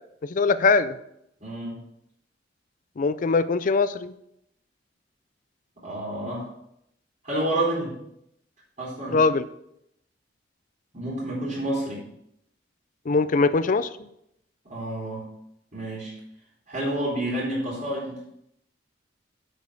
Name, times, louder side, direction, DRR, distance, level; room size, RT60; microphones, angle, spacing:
voice 1, 0.2-1.0 3.0-4.1 9.1-9.4 13.1-13.9, left 4 dB, 45° left, 14 dB, 0.5 m, -21 dB
voice 2, 1.4-1.8 5.8-6.5 7.2-7.9 8.8-9.2 10.9-12.0 14.6-15.3 15.7-16.1 16.7-18.2, right 1 dB, 40° right, -6 dB, 3.4 m, -29 dB
8.2 x 5.3 x 6.1 m, 0.77 s
head